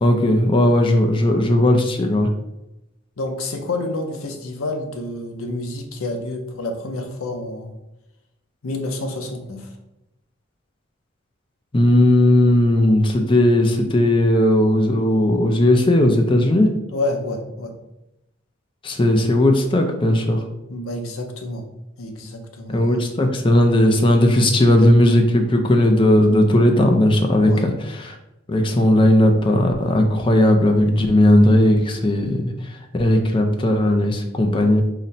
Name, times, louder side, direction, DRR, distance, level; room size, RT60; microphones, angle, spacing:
voice 1, 0.0-2.3 11.7-16.7 18.8-20.4 22.7-27.7 28.0-28.2 28.5-34.8, left 1 dB, 25° left, 4 dB, 0.4 m, -16 dB
voice 2, 3.2-7.7 8.6-9.7 16.9-17.7 20.7-21.6 22.0-23.0 27.4-27.7, left 2 dB, 90° left, 4 dB, 0.7 m, -28 dB
4.0 x 2.1 x 4.0 m, 0.92 s
head